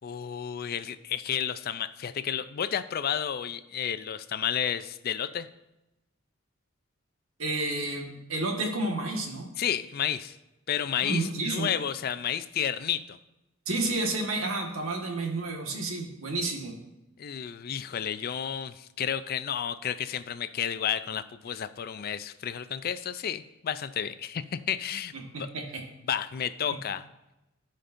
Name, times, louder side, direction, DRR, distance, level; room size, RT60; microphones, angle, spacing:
voice 1, 0.0-5.5 9.6-10.4 10.7-13.2 17.2-25.1 26.1-27.0, left 8 dB, 50° left, 13 dB, 0.4 m, -31 dB
voice 2, 7.4-9.5 11.0-11.7 13.7-16.8 25.1-25.8, right 2 dB, 90° right, 1 dB, 1.5 m, -31 dB
15.5 x 5.2 x 2.6 m, 0.93 s
head